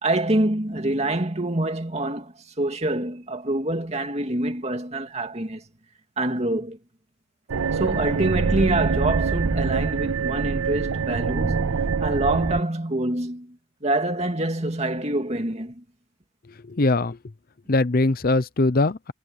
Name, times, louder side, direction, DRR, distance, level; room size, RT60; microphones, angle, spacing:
voice 1, 0.0-5.6 6.2-6.8 7.7-13.6 13.8-15.8, right 1 dB, 30° right, 2.3 m, -26 dB
sound 1, 7.5-12.6, right 5 dB, 80° right, 0.6 m, -25 dB
voice 2, 16.7-17.2 17.7-19.1, left 2 dB, 45° left, 0.6 m, -21 dB
head